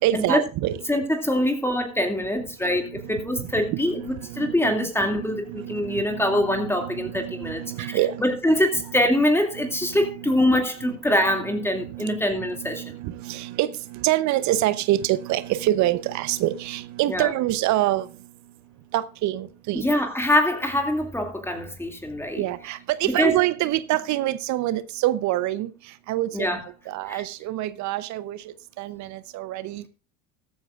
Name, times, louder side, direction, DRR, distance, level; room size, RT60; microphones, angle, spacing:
voice 1, 0.0-0.8 2.6-4.7 5.1-8.2 8.7-8.8 9.5-10.3 10.8-11.2 11.7-18.1 18.9-19.9 22.3-26.5 26.9-29.9, right 14 dB, 55° right, 0.9 m, -27 dB
voice 2, 0.9-12.8 17.1-17.3 19.7-22.4 23.1-23.4 26.3-26.6 27.1-27.2, left 1 dB, 5° left, 2.5 m, -24 dB
14.5 x 13.0 x 2.5 m
hypercardioid pair, 80°, 35 cm